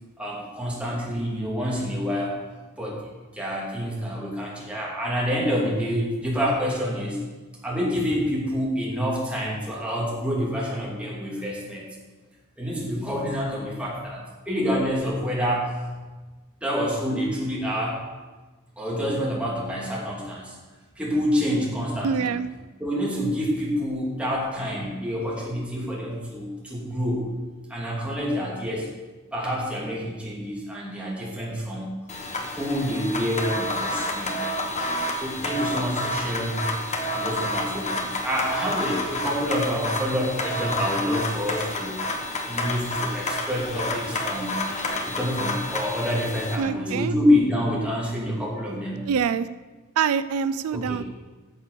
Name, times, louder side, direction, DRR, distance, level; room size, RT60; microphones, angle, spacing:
voice 1, 0.2-2.3 2.8-3.0 3.3-7.2 7.6-11.9 12.6-15.8 16.6-18.0 18.8-20.6 21.0-22.3 22.8-27.2 27.7-28.9 29.3-32.0 32.6-34.5 35.2-36.7 37.0-42.2 42.5-44.6 45.1-49.1 50.7-51.0, equal, 5° right, -5 dB, 2.7 m, -27 dB
voice 2, 22.0-22.5 46.6-47.1 49.1-49.5 50.0-51.0, right 6 dB, 80° right, 14 dB, 0.4 m, -25 dB
sound 1, 32.1-46.6, left 1 dB, 30° left, 1.2 m, -29 dB
10.5 x 6.8 x 6.7 m, 1.3 s
head